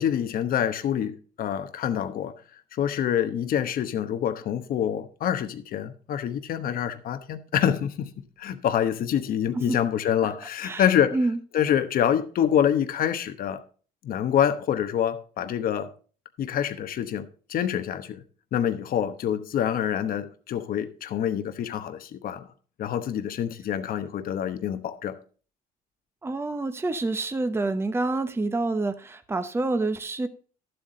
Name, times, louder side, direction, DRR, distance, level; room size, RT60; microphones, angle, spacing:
voice 1, 0.0-2.3 2.7-8.1 8.4-11.2 11.5-13.6 14.0-15.9 16.4-18.2 18.5-22.5 22.8-25.2, left 9 dB, 60° left, 1.0 m, -26 dB
voice 2, 10.6-11.4 26.2-30.3, right 2 dB, 15° right, 0.8 m, -27 dB
12.0 x 7.9 x 3.8 m
cardioid pair, 110°, 17 cm